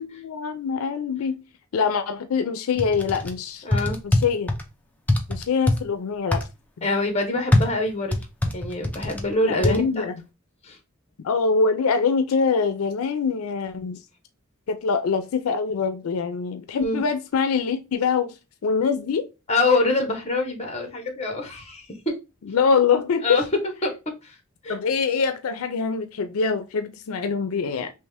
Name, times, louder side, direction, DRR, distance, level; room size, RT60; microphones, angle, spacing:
voice 1, 0.0-1.4 1.7-3.6 4.0-4.5 5.3-6.4 6.8-6.9 9.4-10.1 11.2-14.0 14.7-18.3 18.6-19.3 22.4-23.4 24.7-27.9, left 5 dB, 85° left, 0.4 m, -24 dB
sound 1, 2.8-3.3 3.7-4.6 5.1-5.8 6.3-6.5 7.5-9.2 9.6-9.8, left 1 dB, 5° left, 0.4 m, -22 dB
voice 2, 3.6-4.0 6.8-8.2 8.5-10.1 10.6-10.8 16.7-17.0 19.5-22.2 23.2-23.4 23.8-23.9 24.2-24.3 24.6-24.8, left 2 dB, 30° left, 1.0 m, -25 dB
3.3 x 2.8 x 3.4 m
head